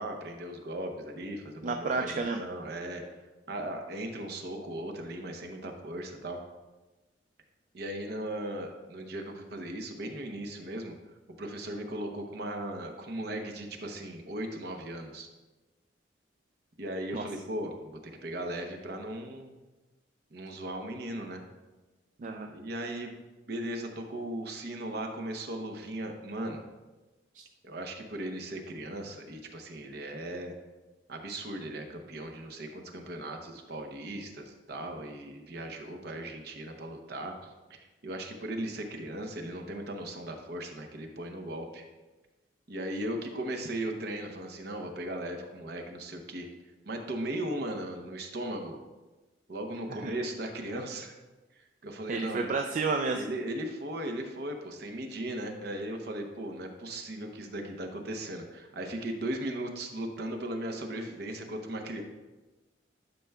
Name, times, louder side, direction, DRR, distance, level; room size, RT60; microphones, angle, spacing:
voice 1, 0.0-3.0 3.5-6.4 7.7-15.3 16.8-19.5 20.3-21.4 22.5-23.1 23.5-26.6 27.6-30.5 31.1-41.8 42.7-46.5 46.8-48.8 49.5-51.1 51.5-52.5 53.1-62.0, right 1 dB, 60° right, 3 dB, 0.8 m, -37 dB
voice 2, 1.6-2.4 17.1-17.2 22.2-22.5 50.0-50.1 52.1-53.2, right 4 dB, 45° right, 4 dB, 0.4 m, -30 dB
11.0 x 5.5 x 2.3 m, 1.2 s
head